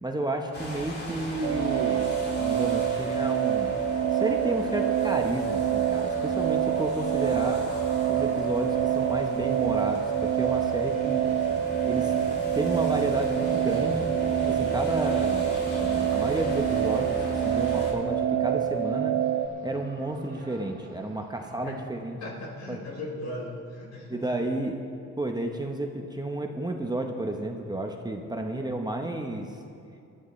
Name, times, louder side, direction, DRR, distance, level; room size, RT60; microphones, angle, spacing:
voice 1, 0.0-3.8 4.1-7.7 8.1-11.3 11.8-12.1 12.5-14.1 14.5-19.2 19.6-22.2 22.7-22.8 24.1-24.8 25.2-29.6, right 2 dB, 15° right, 3 dB, 1.0 m, -31 dB
sound 1, 0.5-17.9, left 1 dB, 35° left, 2.9 m, -38 dB
sound 2, 1.4-19.5, right 9 dB, 70° right, 0.7 m, -26 dB
sound 3, 4.0-21.8, right 2 dB, 35° right, 2.7 m, -51 dB
voice 2, 22.2-24.5, left 1 dB, 65° left, -2 dB, 3.8 m, -38 dB
19.5 x 12.5 x 3.2 m, 2.5 s
cardioid pair, 90°, 30 cm